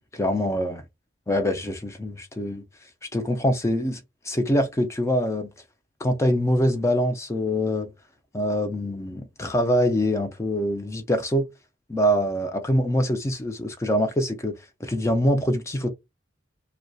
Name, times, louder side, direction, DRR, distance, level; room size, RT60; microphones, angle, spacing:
voice 1, 0.1-0.8 1.3-2.6 3.1-5.5 6.0-7.9 8.3-11.5 11.9-14.5 14.8-15.9, equal, 15° left, 0.3 m, -24 dB
2.6 x 2.1 x 2.2 m
head